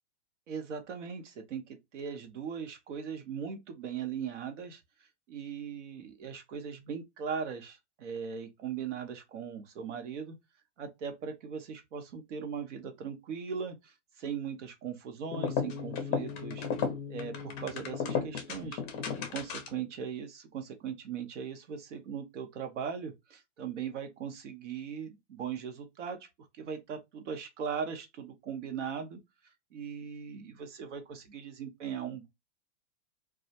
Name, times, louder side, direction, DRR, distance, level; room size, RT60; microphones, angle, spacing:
voice 1, 0.5-10.4 10.8-16.7 17.1-18.8 19.1-26.3 26.6-32.3, right 7 dB, 75° right, 0.8 m, -39 dB
sound 1, 15.3-19.9, left 6 dB, 25° left, 0.4 m, -34 dB
2.3 x 2.1 x 2.6 m
supercardioid pair, 145°, 36 cm